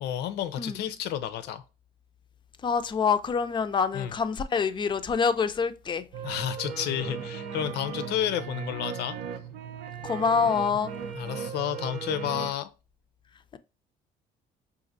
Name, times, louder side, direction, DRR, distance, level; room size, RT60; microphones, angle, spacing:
voice 1, 0.0-1.6 3.9-4.2 6.2-9.2 11.1-12.7, left 10 dB, 80° left, 0.5 m, -31 dB
voice 2, 2.6-6.0 10.0-10.9, left 6 dB, 30° left, 0.3 m, -26 dB
sound 1, 6.1-12.5, right 7 dB, 85° right, 0.5 m, -37 dB
5.0 x 2.5 x 2.6 m
cardioid pair, 110°, 17 cm